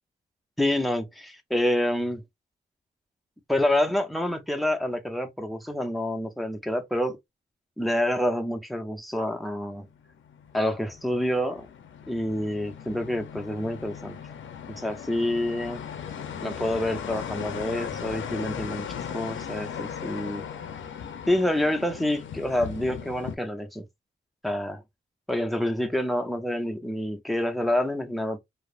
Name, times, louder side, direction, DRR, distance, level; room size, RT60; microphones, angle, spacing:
voice 1, 0.6-2.2 3.5-7.2 7.8-9.9 10.5-11.7 12.1-14.2 14.7-15.8 16.4-20.4 21.3-23.8 24.4-24.8 25.3-28.4, left 1 dB, ahead, 0.6 m, -27 dB
sound 1, 9.9-23.4, left 8 dB, 80° left, 0.5 m, -38 dB
3.0 x 2.0 x 2.4 m
cardioid pair, 65°, 19 cm